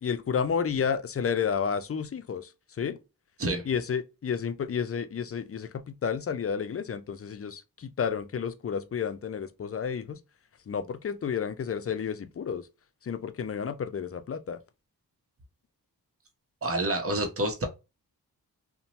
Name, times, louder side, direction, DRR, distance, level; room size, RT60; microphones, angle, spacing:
voice 1, 0.0-2.5 2.8-3.0 3.6-10.2 10.7-12.7 13.0-14.6, left 7 dB, 40° left, 0.4 m, -31 dB
voice 2, 16.6-17.7, right 1 dB, 35° right, 0.9 m, -28 dB
2.6 x 2.2 x 2.9 m
cardioid pair, 50°, 38 cm